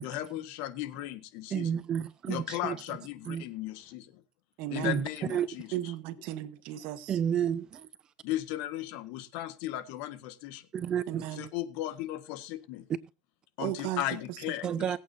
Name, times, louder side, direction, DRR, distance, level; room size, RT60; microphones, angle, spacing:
voice 1, 0.0-1.8 2.3-4.2 4.7-5.7 8.2-10.7 11.3-12.9 13.6-15.0, left 14 dB, 60° left, 1.5 m, -36 dB
voice 2, 1.5-2.8 3.3-3.5 4.8-5.5 7.1-7.9 10.7-11.3 14.6-15.0, right 9 dB, 30° right, 0.5 m, -31 dB
voice 3, 4.6-5.0 5.7-7.2 11.1-11.5 13.6-14.8, right 14 dB, 60° right, 1.3 m, -36 dB
21.5 x 8.6 x 2.7 m
supercardioid pair, 140°, 3 cm